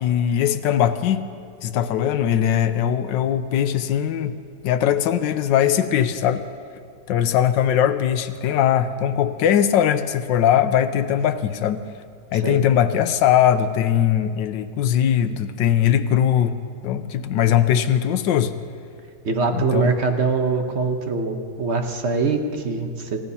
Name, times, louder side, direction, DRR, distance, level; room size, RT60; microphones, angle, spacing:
voice 1, 0.0-1.3 1.6-4.4 4.6-6.4 7.1-11.8 12.3-16.6 16.8-18.5 19.5-19.9, left 10 dB, 75° left, 10 dB, 1.3 m, -20 dB
voice 2, 19.2-23.2, right 4 dB, 45° right, 5 dB, 1.0 m, -23 dB
29.0 x 15.0 x 2.8 m, 2.3 s
omnidirectional pair, 2.1 m